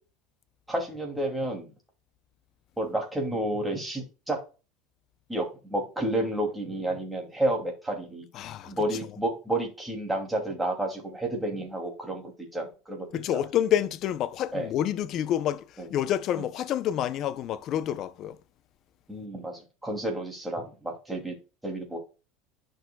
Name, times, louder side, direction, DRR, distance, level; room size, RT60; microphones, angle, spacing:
voice 1, 0.7-1.7 2.8-4.4 5.3-8.3 8.6-13.4 14.5-14.7 15.8-15.9 19.1-21.3 21.6-22.0, right 1 dB, 5° right, 2.5 m, -31 dB
voice 2, 8.3-8.7 13.1-18.4, left 10 dB, 45° left, 0.6 m, -28 dB
10.5 x 6.3 x 2.2 m
supercardioid pair, 140°, 0 cm